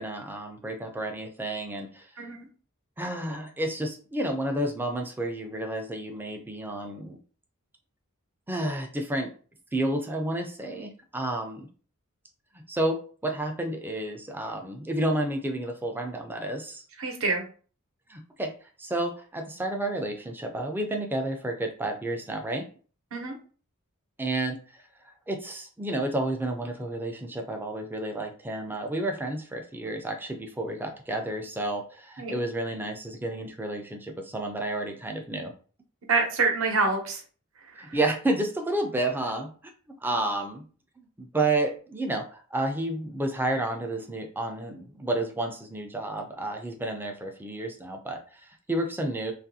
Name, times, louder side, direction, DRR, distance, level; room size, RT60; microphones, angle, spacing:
voice 1, 0.0-2.1 3.0-7.2 8.5-9.3 9.7-11.7 12.5-16.8 18.1-22.7 24.2-24.9 25.3-35.5 37.8-39.5 40.0-40.7 41.2-49.3, right 1 dB, 10° right, 3 dB, 0.3 m, -31 dB
voice 2, 17.0-17.4 23.1-23.3 32.2-32.3 36.1-37.2, right 4 dB, 65° right, 3 dB, 0.7 m, -26 dB
2.9 x 2.4 x 2.7 m, 0.41 s
head